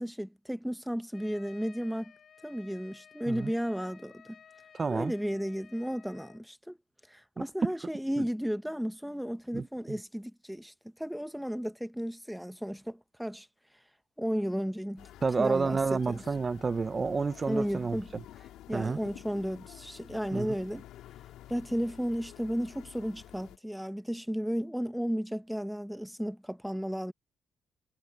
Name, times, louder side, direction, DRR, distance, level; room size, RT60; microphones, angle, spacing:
voice 1, 0.0-2.1 2.4-4.4 4.9-6.8 7.1-10.7 11.0-13.5 14.2-15.1 15.4-16.2 17.5-18.1 18.7-20.8 21.5-27.1, equal, ahead, 0.9 m, -34 dB
Trumpet, 1.1-6.4, left 7 dB, 55° left, 5.8 m, -56 dB
voice 2, 4.7-5.1 7.4-7.7 8.2-8.3 9.5-9.7 15.2-18.2 18.7-19.0 20.3-20.5, right 4 dB, 35° right, 0.9 m, -30 dB
sound 1, 15.0-23.6, left 13 dB, 90° left, 3.5 m, -50 dB
cardioid pair, 90°, 0 cm